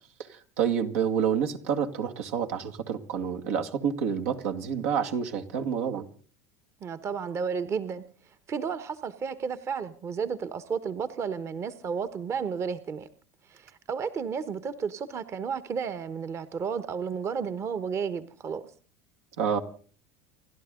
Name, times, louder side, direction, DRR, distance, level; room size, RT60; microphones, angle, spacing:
voice 1, 0.2-6.1 19.4-19.6, right 7 dB, 80° right, 4 dB, 2.3 m, -28 dB
voice 2, 6.8-8.1 8.5-13.1 13.5-18.6, right 6 dB, 35° right, 14 dB, 1.3 m, -32 dB
29.0 x 12.0 x 3.8 m, 0.42 s
supercardioid pair, 100°, 8 cm